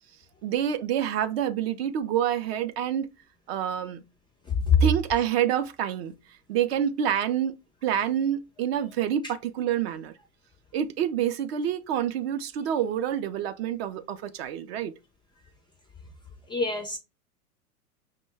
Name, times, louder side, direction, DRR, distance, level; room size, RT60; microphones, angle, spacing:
voice 1, 0.4-3.1 3.5-4.0 4.8-6.1 6.5-7.5 7.8-10.1 10.7-14.9, right 9 dB, 45° right, 0.4 m, -27 dB
voice 2, 4.5-4.8 9.2-9.3 16.5-17.0, left 5 dB, 10° left, 0.4 m, -24 dB
5.4 x 2.2 x 3.3 m
hypercardioid pair, 100°, 45 cm